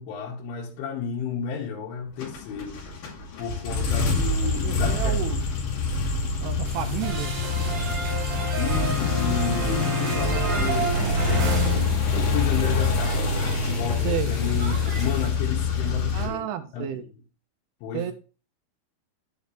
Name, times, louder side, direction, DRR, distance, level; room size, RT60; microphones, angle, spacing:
voice 1, 0.0-2.8 3.4-5.3 8.6-11.0 11.4-16.9 17.8-18.1, left 6 dB, 75° left, 3.8 m, -32 dB
sound 1, 2.2-16.3, left 4 dB, 55° left, 3.9 m, -25 dB
voice 2, 4.6-5.5 6.4-7.7 14.0-14.3 16.1-17.0 17.9-18.1, right 10 dB, 80° right, 3.0 m, -31 dB
sound 2, 6.6-15.3, right 2 dB, 30° right, 3.3 m, -42 dB
sound 3, 7.0-12.5 12.7-15.1, right 4 dB, 50° right, 3.7 m, -31 dB
9.4 x 8.1 x 3.3 m
omnidirectional pair, 5.7 m